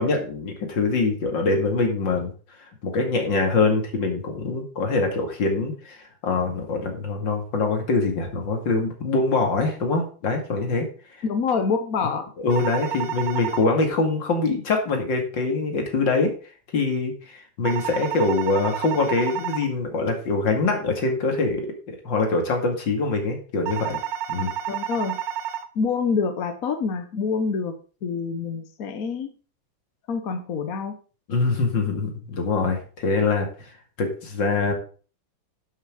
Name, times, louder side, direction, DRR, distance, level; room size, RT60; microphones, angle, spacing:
voice 1, 0.0-2.3 2.8-10.9 12.4-16.3 16.7-24.0 24.3-24.5 31.3-33.7 34.0-34.7, left 3 dB, 70° left, 3 dB, 2.9 m, -24 dB
voice 2, 11.2-12.3 24.7-25.2 25.7-29.3 30.1-31.0, left 5 dB, 55° left, 8 dB, 1.3 m, -26 dB
sound 1, 12.5-13.6 17.6-19.6 23.7-25.6, right 10 dB, 75° right, 1.5 m, -30 dB
11.0 x 6.4 x 5.0 m, 0.38 s
omnidirectional pair, 2.1 m